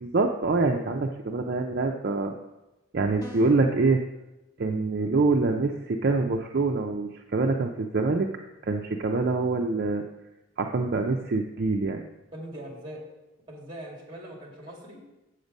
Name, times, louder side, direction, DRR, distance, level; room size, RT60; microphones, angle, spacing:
voice 1, 0.0-2.3 2.9-4.0 4.6-8.3 8.6-10.0 10.6-12.0, right 3 dB, 50° right, 3 dB, 0.5 m, -25 dB
sound 1, 3.2-3.8, left 1 dB, 20° left, 1.5 m, -45 dB
voice 2, 12.3-13.1 13.5-15.0, right 1 dB, 25° right, -1 dB, 2.3 m, -41 dB
8.0 x 6.6 x 5.3 m, 1.0 s
head